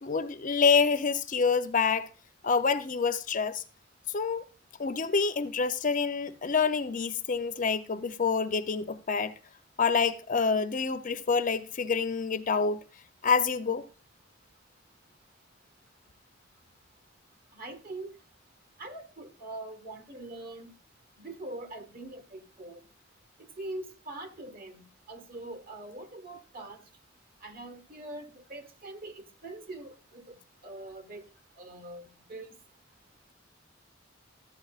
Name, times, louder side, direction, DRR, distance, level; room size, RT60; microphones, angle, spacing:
voice 1, 0.0-2.1 2.4-3.6 4.1-4.4 4.8-9.3 9.8-12.8 13.2-13.8, left 5 dB, 45° left, 0.6 m, -27 dB
voice 2, 17.5-18.1 18.8-20.7 21.2-22.8 23.6-26.8 27.4-30.4 30.6-31.2 31.6-32.5, right 2 dB, 50° right, 1.6 m, -43 dB
12.5 x 8.5 x 2.4 m
head